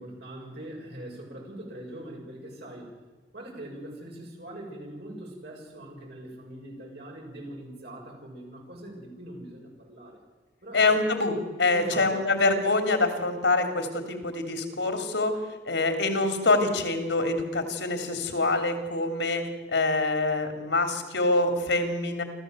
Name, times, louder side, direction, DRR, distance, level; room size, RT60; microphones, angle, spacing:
voice 1, 0.0-3.0 3.3-10.2 10.6-11.0 11.7-12.3, right 1 dB, 65° right, -1 dB, 7.0 m, -42 dB
voice 2, 10.7-15.4 15.6-19.4 19.7-22.2, left 2 dB, 90° left, 7 dB, 3.3 m, -25 dB
26.5 x 14.0 x 8.0 m, 1.3 s
head